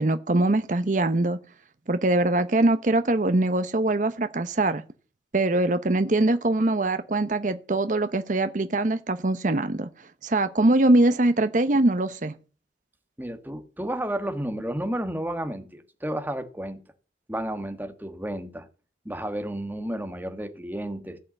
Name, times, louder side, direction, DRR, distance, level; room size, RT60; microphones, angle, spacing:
voice 1, 0.0-1.4 1.9-4.8 5.3-9.9 10.2-12.3, right 2 dB, 45° right, 0.7 m, -22 dB
voice 2, 13.2-16.8 17.3-18.7 19.0-21.2, right 1 dB, 10° right, 1.4 m, -32 dB
16.0 x 5.7 x 8.6 m
head